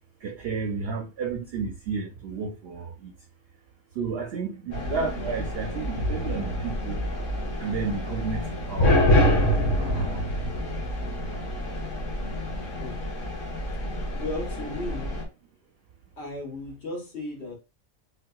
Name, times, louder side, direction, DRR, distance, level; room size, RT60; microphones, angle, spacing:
voice 1, 0.2-3.1 4.0-7.0 7.6-9.3 9.8-10.2, right 5 dB, 60° right, 0.7 m, -32 dB
sound 1, 4.7-15.2, left 1 dB, 85° left, 1.3 m, -27 dB
voice 2, 14.2-15.2 16.2-17.6, left 2 dB, 60° left, 1.2 m, -35 dB
3.6 x 2.7 x 2.2 m
omnidirectional pair, 1.3 m